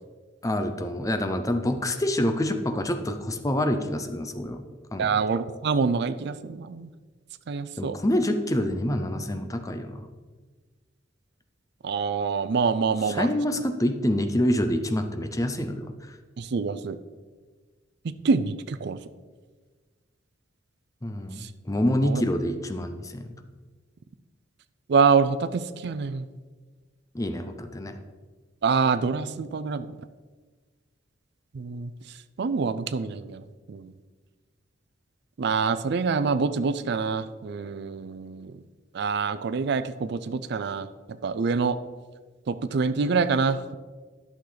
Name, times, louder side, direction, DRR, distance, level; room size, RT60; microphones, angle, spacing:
voice 1, 0.4-4.6 4.9-5.2 7.8-10.1 13.0-16.2 21.0-23.3 27.1-28.0, left 1 dB, 20° left, 7 dB, 0.6 m, -27 dB
voice 2, 5.0-6.9 7.5-8.0 11.8-13.3 16.4-17.0 18.2-19.0 21.4-21.5 22.0-22.2 24.9-26.3 28.6-29.9 31.5-31.9 32.4-33.9 35.4-38.5 38.9-40.9 41.2-41.8 42.5-43.8, right 5 dB, 60° right, 13 dB, 0.4 m, -26 dB
11.0 x 6.6 x 3.9 m, 1.4 s
head